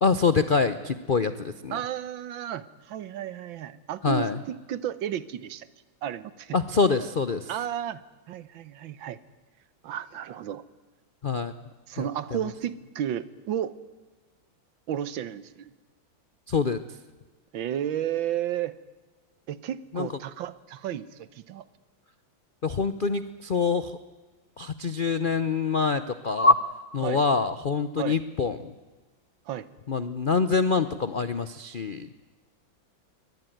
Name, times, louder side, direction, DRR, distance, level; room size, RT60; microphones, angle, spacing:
voice 1, 0.0-1.8 4.0-4.4 6.5-7.5 11.2-11.5 12.0-12.5 16.5-16.8 19.9-20.1 22.6-24.0 24.6-26.6 26.9-28.7 29.9-32.1, left 4 dB, 60° left, 12 dB, 0.5 m, -25 dB
voice 2, 1.7-5.7 6.0-6.6 7.5-8.0 8.3-9.2 9.8-10.6 11.9-13.7 14.9-15.7 17.5-18.8 19.5-21.6 27.0-27.2 28.0-28.2 29.5-29.7, right 10 dB, 75° right, 16 dB, 1.7 m, -33 dB
23.0 x 19.0 x 9.2 m, 1.3 s
omnidirectional pair, 2.1 m